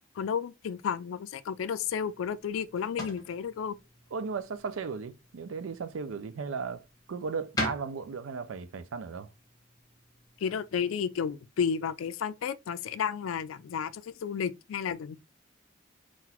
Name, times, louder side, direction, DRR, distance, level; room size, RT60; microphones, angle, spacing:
voice 1, 0.2-3.7 10.4-15.2, left 7 dB, 90° left, 0.4 m, -32 dB
sound 1, 1.8-10.9, left 2 dB, 20° left, 1.2 m, -43 dB
voice 2, 4.1-9.3, right 5 dB, 90° right, 0.4 m, -36 dB
3.9 x 2.5 x 4.2 m
head